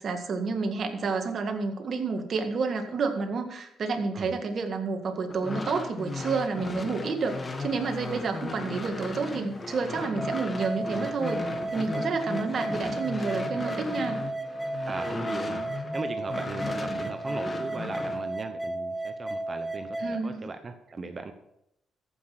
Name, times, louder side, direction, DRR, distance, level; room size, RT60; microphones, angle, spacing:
voice 1, 0.0-11.4 11.7-14.2 20.0-20.5, right 4 dB, 50° right, 5 dB, 1.8 m, -30 dB
sound 1, 5.3-16.0 16.3-18.2, left 3 dB, 30° left, 1.7 m, -36 dB
sound 2, 10.2-20.2, right 2 dB, 5° right, 1.2 m, -34 dB
voice 2, 14.8-21.3, right 3 dB, 35° right, 7 dB, 1.0 m, -38 dB
14.5 x 6.1 x 6.0 m, 0.80 s
cardioid pair, 90°, 0 cm